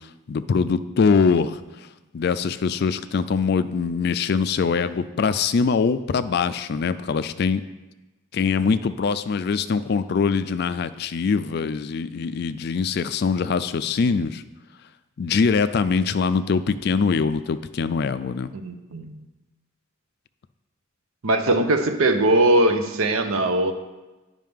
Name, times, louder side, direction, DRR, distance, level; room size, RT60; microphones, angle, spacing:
voice 1, 0.3-1.6 2.1-7.6 8.3-14.4 15.2-18.5, left 5 dB, 50° left, 13 dB, 0.3 m, -23 dB
voice 2, 18.5-19.1 21.2-23.7, right 1 dB, 85° right, 7 dB, 0.7 m, -20 dB
9.2 x 5.5 x 3.6 m, 1.1 s
head